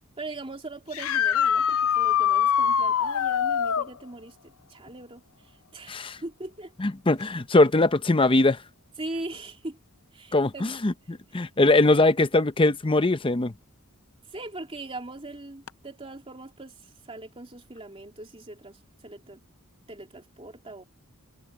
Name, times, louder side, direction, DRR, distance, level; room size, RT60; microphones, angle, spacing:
voice 1, 0.2-6.7 9.0-9.8 10.1-10.7 14.3-19.4 19.9-20.8, right 2 dB, 25° right, 2.9 m, -40 dB
sound 1, 0.9-3.9 7.2-7.3 9.3-9.4 15.7-15.8, left 8 dB, 65° left, 0.6 m, -23 dB
voice 2, 5.9-6.2 6.8-8.6 10.3-10.9 11.3-13.5, left 2 dB, 25° left, 0.7 m, -21 dB
head